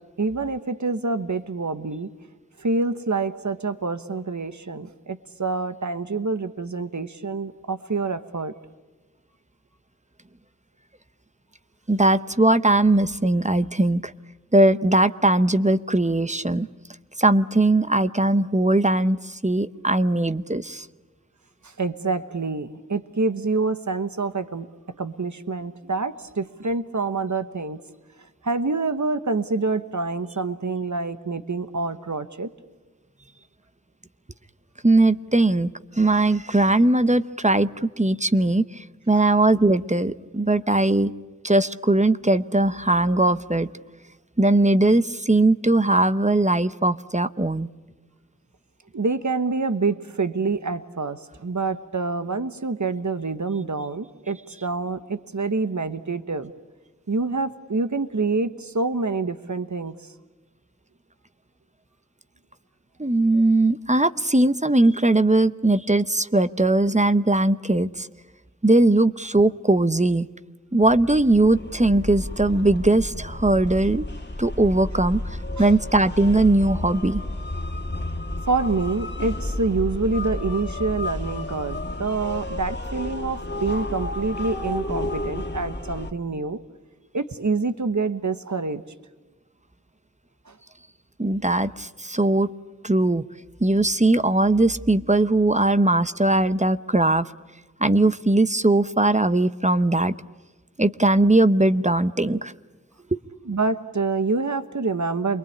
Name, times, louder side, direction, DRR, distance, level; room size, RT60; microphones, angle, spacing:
voice 1, 0.2-2.1 2.6-8.5 21.6-24.7 25.0-27.8 28.4-32.5 48.9-56.5 57.1-60.1 75.6-75.7 78.5-86.6 87.1-88.8 90.5-90.6 103.5-105.4, right 3 dB, 70° right, 11 dB, 1.2 m, -26 dB
voice 2, 11.9-14.1 14.5-16.7 17.2-20.9 34.8-35.7 36.0-41.1 41.4-43.7 44.4-47.7 63.0-68.1 68.6-70.3 70.7-74.1 74.4-77.2 91.2-92.5 92.8-93.2 93.6-97.2 97.8-100.1 100.8-102.5 103.1-103.2, right 2 dB, 25° right, 12 dB, 0.9 m, -20 dB
sound 1, 70.8-86.1, left 1 dB, 35° left, 1.9 m, -31 dB
28.5 x 23.0 x 8.6 m, 1.2 s
wide cardioid pair, 40°, 30 cm